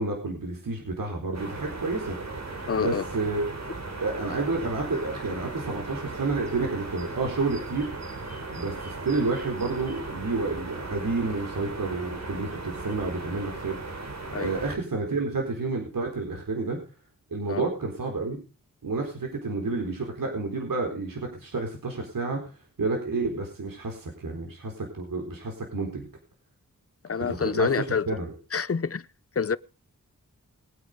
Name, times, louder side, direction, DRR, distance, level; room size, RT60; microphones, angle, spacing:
voice 1, 0.0-2.2 2.7-3.5 4.0-7.9 8.5-16.8 17.3-18.4 18.8-22.4 22.8-26.1 27.3-27.7 28.1-28.3, right 3 dB, 85° right, 4.3 m, -30 dB
sound 1, 1.3-14.8, right 3 dB, 55° right, 3.6 m, -37 dB
voice 2, 2.7-3.1 14.3-14.5 17.5-17.6 27.0-28.1 28.5-29.1 29.4-29.6, left 6 dB, 45° left, 0.8 m, -27 dB
21.5 x 8.9 x 5.2 m
wide cardioid pair, 65°, 33 cm